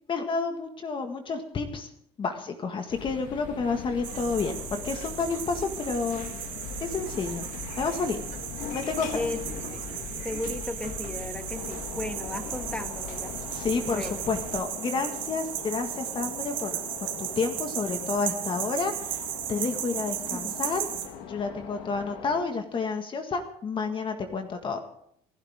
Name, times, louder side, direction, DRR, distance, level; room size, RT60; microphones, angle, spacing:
voice 1, 0.1-1.9 2.2-6.3 6.8-7.5 7.8-8.2 8.7-9.2 13.5-16.8 17.2-19.2 19.5-20.9 21.3-24.8, left 4 dB, 35° left, 5 dB, 1.9 m, -30 dB
sound 1, 2.9-14.6, left 7 dB, 65° left, 1.5 m, -39 dB
sound 2, 4.0-21.1, right 12 dB, 70° right, 2.7 m, -36 dB
voice 2, 9.1-13.4 13.9-14.2 20.2-20.6, left 2 dB, 10° left, 6 dB, 1.5 m, -36 dB
sound 3, 11.5-22.4, left 7 dB, 85° left, 2.5 m, -42 dB
28.0 x 11.5 x 3.7 m, 0.68 s
cardioid pair, 110°, 14 cm